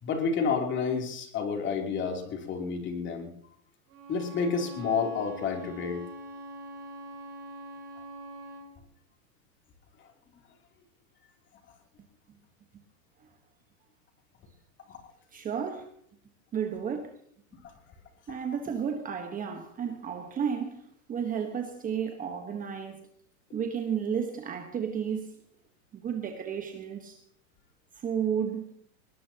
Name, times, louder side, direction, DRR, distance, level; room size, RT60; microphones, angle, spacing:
voice 1, 0.0-3.3 4.1-6.0 14.9-15.0, left 5 dB, 25° left, 3.2 m, -30 dB
Bowed string instrument, 3.9-8.7, right 1 dB, 40° right, 5.0 m, -43 dB
voice 2, 15.3-15.9 16.5-17.1 18.3-20.8 21.1-23.1 23.5-25.3 25.9-27.2 28.0-28.7, right 7 dB, 20° right, 1.3 m, -32 dB
20.5 x 20.5 x 2.9 m
supercardioid pair, 140°, 43 cm